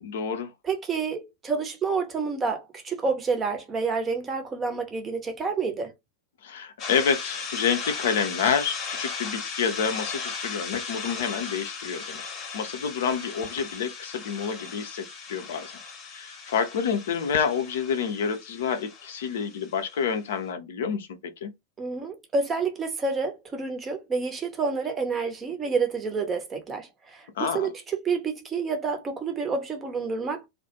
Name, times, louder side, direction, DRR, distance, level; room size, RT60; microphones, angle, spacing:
voice 1, 0.0-0.5 6.4-12.2 12.5-15.7 16.1-21.5 27.4-27.7, left 6 dB, 60° left, 0.5 m, -28 dB
voice 2, 0.6-5.9 21.8-30.4, right 4 dB, 20° right, 0.6 m, -29 dB
sound 1, 6.8-20.1, left 5 dB, 35° left, 0.8 m, -37 dB
2.3 x 2.1 x 2.7 m
figure-of-eight pair, 90°, 0 cm